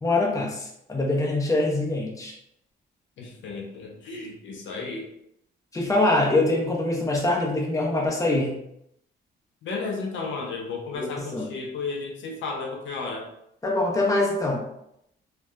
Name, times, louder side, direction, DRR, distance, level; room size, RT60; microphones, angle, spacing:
voice 1, 0.0-2.3 5.7-8.5 11.0-11.1 11.3-11.4 13.6-14.6, left 2 dB, 15° left, -2 dB, 0.7 m, -24 dB
voice 2, 3.2-5.1 9.6-13.3, left 4 dB, 70° left, 0 dB, 0.5 m, -33 dB
2.6 x 2.2 x 2.3 m, 0.76 s
cardioid pair, 90°, 20 cm